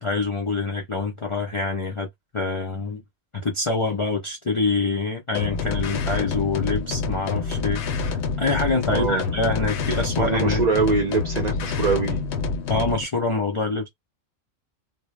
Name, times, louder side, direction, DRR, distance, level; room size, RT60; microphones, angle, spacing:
voice 1, 0.0-2.1 2.3-3.0 3.3-11.0 12.7-13.9, left 3 dB, 45° left, 0.4 m, -26 dB
sound 1, 5.3-13.0, left 4 dB, 65° left, 0.8 m, -27 dB
voice 2, 8.9-9.3 10.2-12.2, right 4 dB, 45° right, 0.6 m, -23 dB
2.2 x 2.1 x 3.0 m
omnidirectional pair, 1.3 m